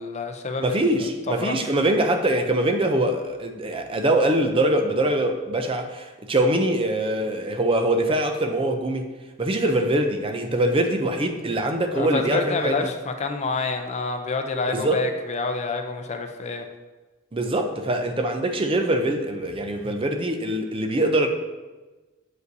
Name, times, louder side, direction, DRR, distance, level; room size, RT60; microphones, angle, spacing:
voice 1, 0.0-1.6 11.9-16.7, left 3 dB, 35° left, 5 dB, 0.5 m, -28 dB
voice 2, 0.6-9.1 9.4-12.9 14.7-15.0 17.3-21.3, right 1 dB, 25° right, 6 dB, 0.5 m, -23 dB
7.9 x 5.3 x 2.7 m, 1.2 s
head